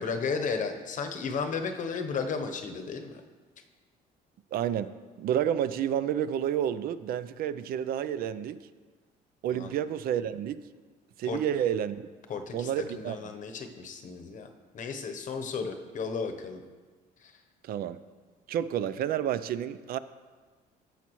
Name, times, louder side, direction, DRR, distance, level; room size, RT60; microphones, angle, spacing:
voice 1, 0.0-3.2 9.5-9.7 11.2-11.4 12.3-12.7 12.9-16.6 17.2-17.3, left 5 dB, 50° left, 6 dB, 0.8 m, -34 dB
voice 2, 4.5-4.9 5.2-8.6 9.4-10.6 11.2-12.0 12.5-13.3 17.6-18.0 18.5-20.0, right 10 dB, 60° right, 14 dB, 0.4 m, -30 dB
14.5 x 5.8 x 3.1 m, 1.4 s
cardioid pair, 110°, 17 cm